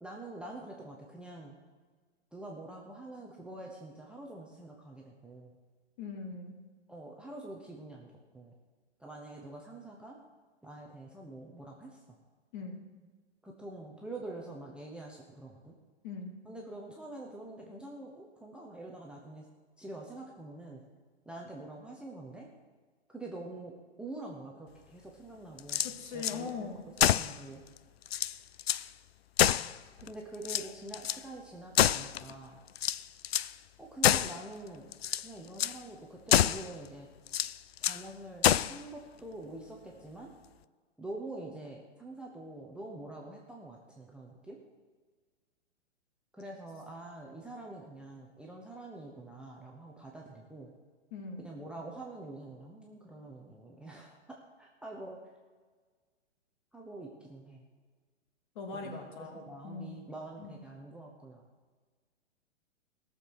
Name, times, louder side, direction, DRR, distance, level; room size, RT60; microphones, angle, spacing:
voice 1, 0.0-1.6 2.3-5.6 6.9-8.6 9.0-10.2 10.6-12.2 13.4-15.7 16.4-19.5 19.8-20.8 21.2-22.5 23.1-25.8 26.1-26.7 27.0-27.6 30.0-32.6 33.8-34.9 35.2-37.1 37.8-40.3 41.0-44.6 46.3-50.7 51.4-55.2 56.7-57.6 58.7-61.4, right 2 dB, 5° right, -2 dB, 1.1 m, -46 dB
voice 2, 6.0-6.6 12.5-12.8 16.0-16.3 25.8-26.8 51.1-51.5 58.5-60.0 60.4-60.6, left 4 dB, 45° left, 3 dB, 2.5 m, -41 dB
sound 1, 25.6-26.4 27.0-27.4 27.8-27.9 28.1-28.9 29.4-30.1 30.4-31.2 31.7-32.3 32.8-33.5 34.0-34.4 34.9-35.3 35.6-35.8 36.3-36.7 37.3-38.0 38.4-38.8, left 11 dB, 60° left, 0.5 m, -27 dB
17.5 x 6.9 x 6.1 m, 1.5 s
figure-of-eight pair, 110°, 35 cm